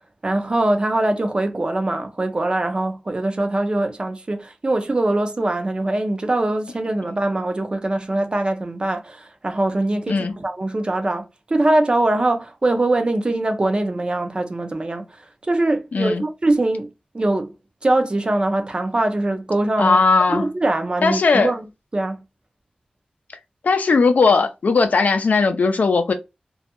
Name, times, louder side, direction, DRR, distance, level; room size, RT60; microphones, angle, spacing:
voice 1, 0.2-15.0 15.5-16.9 17.1-17.5 17.8-20.0 20.3-21.6 21.9-22.2, right 2 dB, 35° right, 0.4 m, -22 dB
voice 2, 15.9-16.2 19.8-20.5 21.0-21.5 23.6-26.1, left 4 dB, 75° left, 0.4 m, -18 dB
2.2 x 2.1 x 2.8 m
wide cardioid pair, 75°, 3 cm